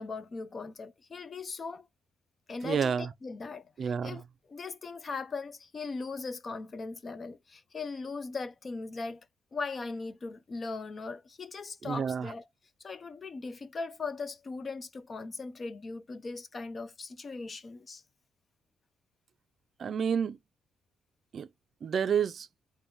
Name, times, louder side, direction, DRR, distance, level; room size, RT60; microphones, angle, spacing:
voice 1, 0.0-1.9 2.5-9.3 9.5-12.5 12.8-18.0, left 4 dB, 35° left, 0.5 m, -39 dB
voice 2, 2.6-3.1 3.8-4.2 11.8-12.3 19.8-20.4 21.3-21.5 21.8-22.5, right 7 dB, 50° right, 0.4 m, -29 dB
3.8 x 2.6 x 3.5 m
cardioid pair, 90°, 0 cm